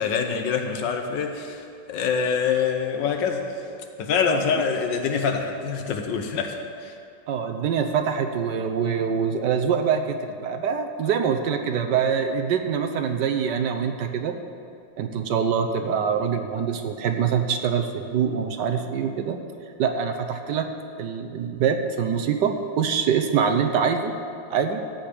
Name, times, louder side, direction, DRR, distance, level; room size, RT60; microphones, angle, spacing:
voice 1, 0.0-3.4 4.0-6.6 6.8-6.9, left 6 dB, 75° left, 5 dB, 1.6 m, -25 dB
voice 2, 7.3-14.3 15.0-19.4 19.8-20.7 21.0-24.1 24.5-24.8, right 7 dB, 70° right, 6 dB, 1.3 m, -24 dB
14.0 x 5.1 x 8.7 m, 2.4 s
omnidirectional pair, 2.0 m